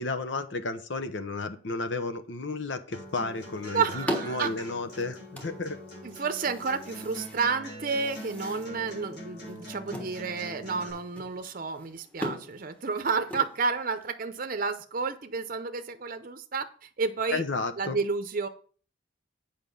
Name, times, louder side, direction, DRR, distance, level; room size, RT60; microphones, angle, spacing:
voice 1, 0.0-5.8 17.3-18.0, left 3 dB, 75° left, 9 dB, 0.9 m, -32 dB
Acoustic guitar, 2.9-10.9, equal, 55° left, 4.8 m, -43 dB
sound 1, 3.0-14.1, equal, 10° left, 1.2 m, -41 dB
voice 2, 3.7-4.5 6.0-17.4 17.8-18.5, right 5 dB, 45° right, 8 dB, 0.7 m, -31 dB
8.2 x 5.2 x 5.4 m, 0.43 s
head